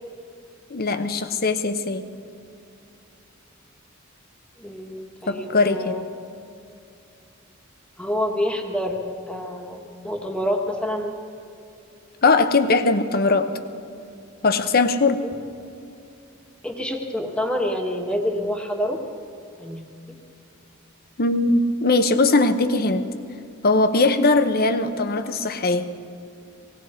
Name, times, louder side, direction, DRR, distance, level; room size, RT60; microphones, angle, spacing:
voice 1, 0.7-2.0 5.3-6.0 12.2-13.5 14.4-15.2 21.2-23.0 23.6-25.8, left 3 dB, 45° left, 10 dB, 0.9 m, -20 dB
voice 2, 4.6-6.0 8.0-11.2 15.2-15.3 16.6-19.0 19.6-19.8, left 1 dB, 5° left, 2 dB, 1.4 m, -27 dB
18.0 x 18.0 x 4.4 m, 2.6 s
head